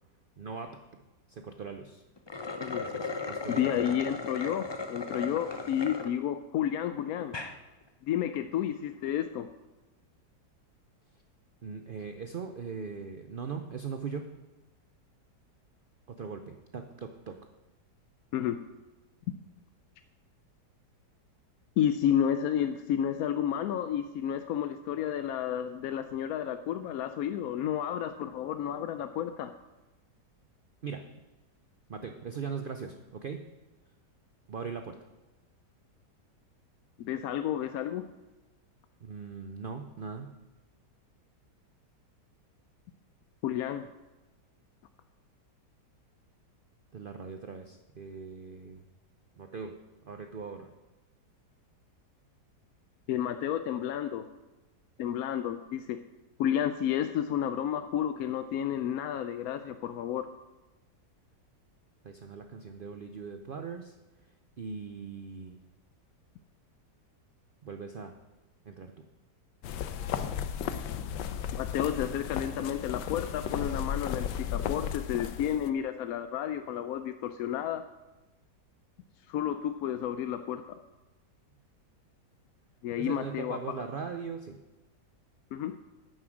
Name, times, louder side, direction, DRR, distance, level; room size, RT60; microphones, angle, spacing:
voice 1, 0.4-0.8 1.3-2.0 2.8-4.0 11.6-14.3 16.1-17.4 30.8-31.1 31.9-33.5 34.5-35.0 39.0-40.3 46.9-48.8 49.4-49.8 50.0-50.7 62.0-63.9 64.6-65.6 67.6-68.1 68.7-69.0 83.0-84.6, right 5 dB, 65° right, 6 dB, 0.5 m, -40 dB
sound 1, 2.2-6.1 6.6-6.7 7.2-7.5, left 4 dB, 40° left, 0.3 m, -37 dB
voice 2, 2.6-2.9 3.5-7.3 8.0-9.5 18.3-18.6 21.8-29.5 37.0-38.1 43.4-43.9 53.1-54.3 55.0-56.0 56.4-60.3 71.6-77.8 79.3-80.8 82.8-83.8 85.5-85.8, left 10 dB, 70° left, 9 dB, 0.9 m, -31 dB
sound 2, 69.6-75.7, left 9 dB, 85° left, 1.4 m, -34 dB
9.7 x 9.6 x 6.2 m, 1.1 s
omnidirectional pair, 1.8 m